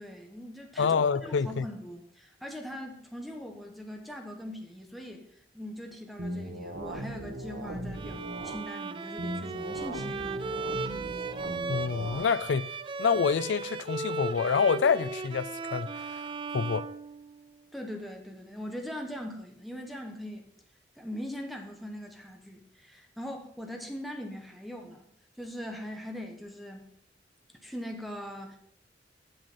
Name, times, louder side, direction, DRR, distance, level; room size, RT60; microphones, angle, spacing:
voice 1, 0.0-1.0 1.2-5.3 5.5-10.8 17.7-20.4 21.0-25.1 25.4-26.9 27.6-28.6, equal, ahead, 0.9 m, -41 dB
voice 2, 0.8-1.7 11.7-12.7 13.0-16.2 16.5-16.9, left 6 dB, 80° left, 0.4 m, -27 dB
sound 1, 6.2-8.6 9.2-12.2, right 1 dB, 65° right, 1.2 m, -38 dB
Bowed string instrument, 7.9-17.7, right 4 dB, 30° right, 0.3 m, -37 dB
7.7 x 7.4 x 4.1 m
head